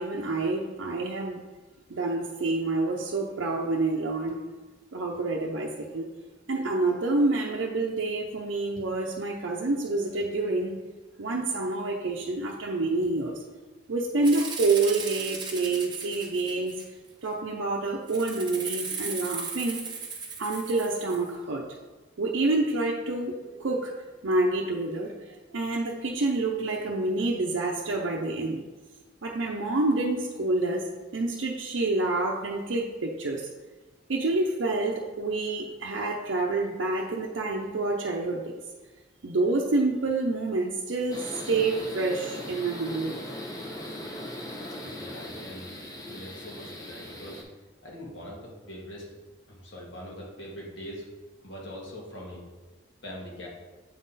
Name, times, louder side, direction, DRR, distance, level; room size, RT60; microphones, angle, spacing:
voice 1, 0.0-1.4 1.9-4.4 4.9-6.1 6.5-10.8 11.2-13.4 13.9-16.7 17.2-19.8 20.4-21.8 22.2-23.9 24.2-28.6 29.2-33.5 34.1-38.4 39.2-43.2, right 2 dB, 80° right, -2 dB, 0.6 m, -28 dB
Rattle (instrument), 14.2-17.1 18.1-21.3, right 5 dB, 20° right, 0.8 m, -36 dB
sound 1, 41.1-47.4, left 1 dB, 20° left, 0.7 m, -39 dB
voice 2, 44.9-47.4 47.8-49.1 49.5-51.1 51.4-52.4 53.0-53.5, equal, 70° left, -3 dB, 1.7 m, -42 dB
7.7 x 3.7 x 4.1 m, 1.2 s
head